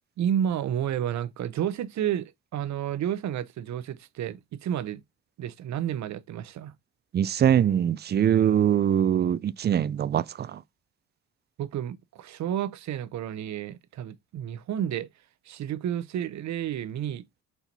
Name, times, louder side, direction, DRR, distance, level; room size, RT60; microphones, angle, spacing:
voice 1, 0.2-5.0 5.4-6.7 11.6-15.1 15.5-17.4, right 10 dB, 65° right, 0.8 m, -31 dB
voice 2, 7.1-10.6, right 9 dB, 35° right, 0.4 m, -23 dB
5.6 x 4.5 x 4.0 m
cardioid pair, 90°, 30 cm